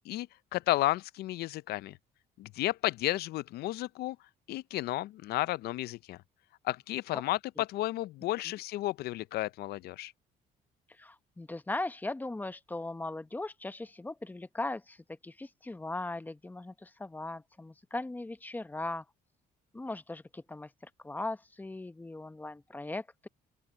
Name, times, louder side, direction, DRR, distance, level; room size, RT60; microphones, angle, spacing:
voice 1, 0.0-2.0 2.4-4.2 4.5-6.2 6.6-10.1, left 16 dB, 70° left, 0.5 m, -33 dB
voice 2, 10.9-19.1 19.7-23.3, left 2 dB, 10° left, 0.8 m, -39 dB
open air
cardioid pair, 110°, 17 cm